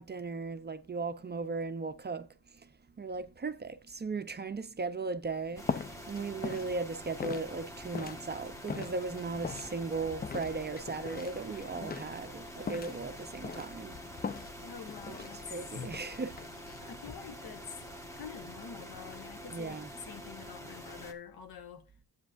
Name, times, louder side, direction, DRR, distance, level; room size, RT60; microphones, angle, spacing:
voice 1, 0.0-2.3 3.0-14.0 15.0-16.3 19.5-19.9, right 4 dB, 25° right, 0.5 m, -37 dB
sound 1, 5.3-19.3, left 5 dB, 25° left, 0.4 m, -43 dB
sound 2, 5.6-21.1, equal, 10° left, 1.3 m, -46 dB
voice 2, 14.6-15.6 16.8-21.9, left 7 dB, 75° left, 1.2 m, -47 dB
9.9 x 8.1 x 2.5 m
cardioid pair, 115°, 37 cm